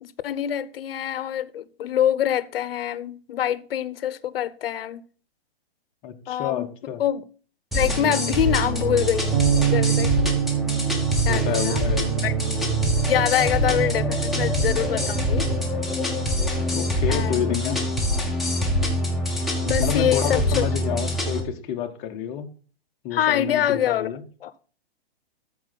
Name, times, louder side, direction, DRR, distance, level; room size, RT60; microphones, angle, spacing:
voice 1, 0.0-5.0 6.3-6.7 7.0-7.2 7.7-10.1 11.3-11.8 12.2-12.3 13.1-15.5 17.1-17.7 19.6-20.6 23.1-24.1 24.4-24.5, left 10 dB, 65° left, 0.8 m, -25 dB
voice 2, 6.0-7.0 11.3-12.3 16.7-17.9 19.8-22.5 23.0-24.2, left 9 dB, 20° left, 0.8 m, -29 dB
sound 1, 7.7-21.4, equal, ahead, 1.2 m, -24 dB
Bass guitar, 9.3-15.6, right 10 dB, 50° right, 0.8 m, -27 dB
13.5 x 4.5 x 4.0 m
hypercardioid pair, 160°, 31 cm